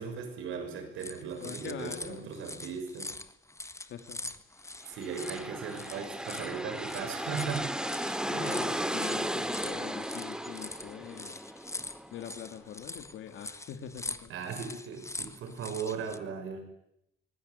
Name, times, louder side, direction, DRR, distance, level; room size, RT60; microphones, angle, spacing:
voice 1, 0.0-3.2 4.9-7.7 8.3-8.6 14.3-16.7, right 6 dB, 85° right, 7 dB, 6.3 m, -38 dB
sound 1, 1.0-16.2, left 2 dB, 15° left, 1.5 m, -43 dB
voice 2, 1.4-2.3 3.9-4.3 8.3-11.4 12.1-14.3, left 9 dB, 75° left, 7 dB, 2.3 m, -43 dB
sound 2, 4.8-12.5, equal, 5° right, 2.2 m, -35 dB
24.5 x 19.0 x 9.5 m, 0.81 s
cardioid pair, 90°, 20 cm